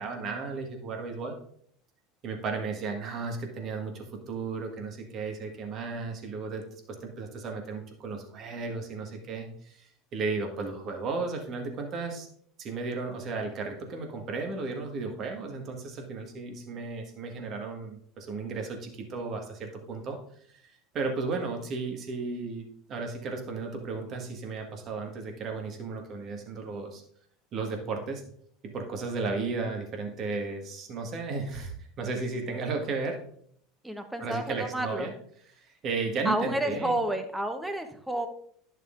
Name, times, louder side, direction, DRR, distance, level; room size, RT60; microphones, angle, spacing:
voice 1, 0.0-1.3 2.2-6.6 7.0-12.3 12.6-20.2 20.6-27.0 27.5-28.2 28.6-33.2 34.2-35.1 35.5-37.0, right 4 dB, 45° right, 3 dB, 1.7 m, -34 dB
voice 2, 33.8-35.1 36.2-38.3, right 1 dB, 5° right, 6 dB, 1.1 m, -30 dB
11.0 x 6.5 x 2.6 m, 0.63 s
hypercardioid pair, 95°, 0 cm